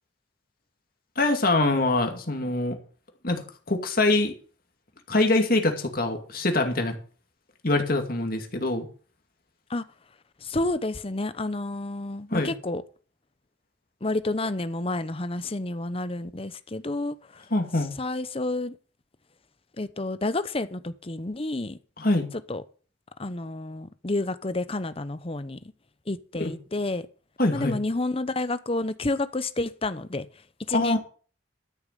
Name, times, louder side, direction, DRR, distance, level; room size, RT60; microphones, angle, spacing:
voice 1, 1.2-2.8 3.2-4.3 5.1-7.0 7.6-8.9 12.3-12.5 17.5-17.9 22.0-22.3 26.4-26.5 27.4-27.7 30.7-31.0, left 2 dB, 50° left, 2.4 m, -24 dB
voice 2, 10.4-12.8 14.0-17.4 18.0-18.7 19.8-21.8 22.5-22.6 23.2-25.6 26.1-27.1 27.5-30.3 30.7-31.0, left 2 dB, 30° left, 0.8 m, -30 dB
13.0 x 6.8 x 6.8 m
head